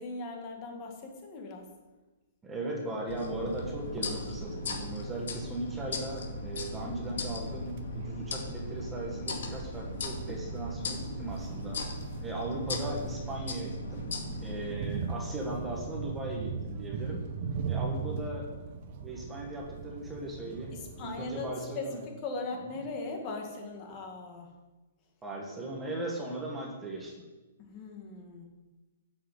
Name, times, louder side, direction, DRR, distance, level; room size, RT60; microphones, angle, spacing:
voice 1, 0.0-1.7 20.7-24.5 27.6-28.5, left 3 dB, 20° left, 2 dB, 1.8 m, -39 dB
voice 2, 2.4-11.8 12.2-14.1 14.4-17.3 17.7-18.5 19.0-22.0 25.2-27.2, right 1 dB, 5° right, -1 dB, 1.4 m, -38 dB
sound 1, 3.1-14.7, left 3 dB, 55° left, 2.0 m, -38 dB
sound 2, 3.4-21.5, right 5 dB, 30° right, 1.0 m, -40 dB
9.8 x 7.7 x 7.7 m, 1.2 s
hypercardioid pair, 180°, 0 cm